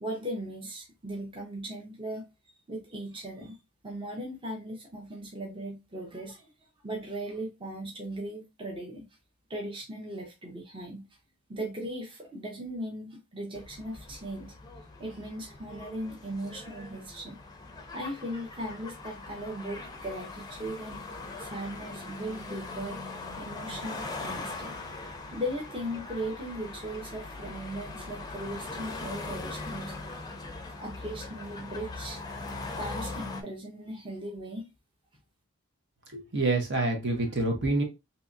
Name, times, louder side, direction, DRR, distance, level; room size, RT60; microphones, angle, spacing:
voice 1, 0.0-2.3 2.7-3.6 3.8-6.5 6.8-9.1 9.5-11.0 11.5-14.5 15.0-17.4 17.9-23.0 23.4-24.8 25.3-29.9 30.8-32.2 32.8-34.6, right 1 dB, 25° right, 0.8 m, -38 dB
sound 1, 13.5-33.4, left 3 dB, 15° left, 0.6 m, -41 dB
voice 2, 36.1-37.8, right 2 dB, 50° right, 1.0 m, -27 dB
3.7 x 2.8 x 2.5 m
head